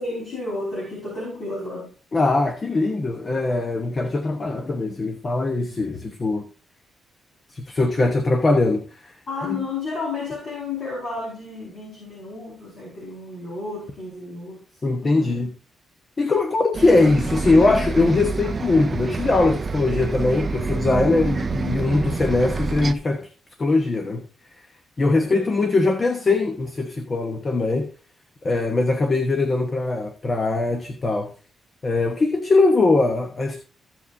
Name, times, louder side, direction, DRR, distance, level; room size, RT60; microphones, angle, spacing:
voice 1, 0.0-1.9 9.3-14.6 15.0-15.5 25.1-25.5, left 3 dB, 50° left, 4.7 m, -32 dB
voice 2, 2.1-6.5 7.5-9.1 9.5-9.6 14.8-15.5 16.2-23.3 23.6-24.3 25.0-27.9 28.4-31.3 31.8-33.6, left 3 dB, 25° left, 1.0 m, -21 dB
Bus, 16.7-22.9, right 4 dB, 30° right, 0.4 m, -27 dB
15.0 x 7.4 x 2.7 m
wide cardioid pair, 165°, 0 cm